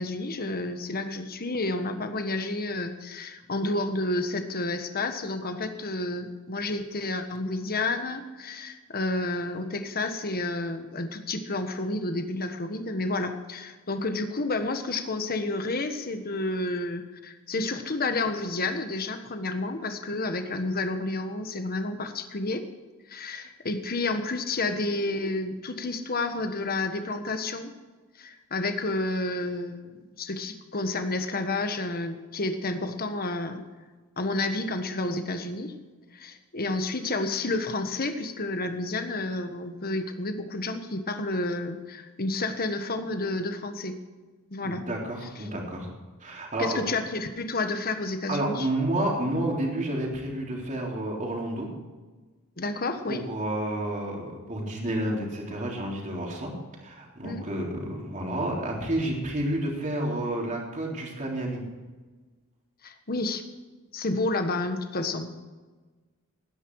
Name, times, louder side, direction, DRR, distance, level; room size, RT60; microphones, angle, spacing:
voice 1, 0.0-22.7 23.1-27.7 28.2-33.6 34.2-35.7 36.1-44.0 44.5-44.9 46.6-48.7 52.6-53.2 57.2-57.4 62.8-63.4 63.9-65.5, left 2 dB, 45° left, 7 dB, 1.4 m, -30 dB
voice 2, 44.6-45.9 46.2-46.8 48.3-51.7 53.1-56.5 56.8-61.7, right 1 dB, 35° right, -2 dB, 3.6 m, -30 dB
19.0 x 10.0 x 4.8 m, 1.3 s
head